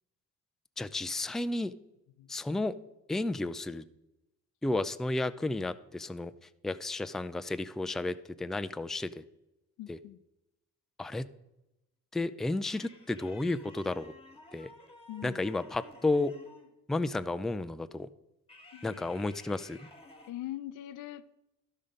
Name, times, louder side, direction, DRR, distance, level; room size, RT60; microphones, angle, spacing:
voice 1, 0.8-1.7 2.3-2.7 3.1-3.8 4.6-6.3 6.6-9.2 9.9-10.0 11.0-11.3 12.1-14.1 14.5-14.7 15.2-16.3 16.9-18.1 18.8-19.8, left 2 dB, ahead, 0.3 m, -32 dB
voice 2, 9.8-10.2 15.1-15.4 18.7-19.0 20.3-21.3, left 14 dB, 85° left, 0.6 m, -42 dB
sound 1, 12.6-16.8 18.5-20.3, left 2 dB, 20° left, 1.5 m, -54 dB
12.5 x 5.5 x 5.1 m
cardioid pair, 90°, 30 cm